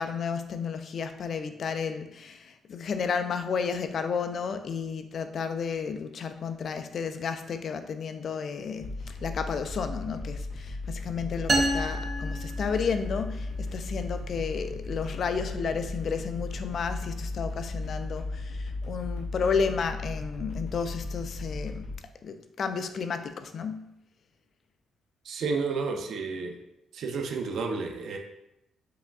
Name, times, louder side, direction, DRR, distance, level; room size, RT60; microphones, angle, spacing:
voice 1, 0.0-21.9 22.2-23.9, left 6 dB, 55° left, 9 dB, 0.4 m, -32 dB
sound 1, 8.8-22.0, left 2 dB, 85° left, 1.2 m, -36 dB
sound 2, 11.5-13.3, right 1 dB, 30° right, 0.6 m, -29 dB
voice 2, 25.2-26.6 26.9-28.2, right 4 dB, 70° right, 4 dB, 0.6 m, -31 dB
4.8 x 3.4 x 2.4 m, 0.85 s
cardioid pair, 90°, 0 cm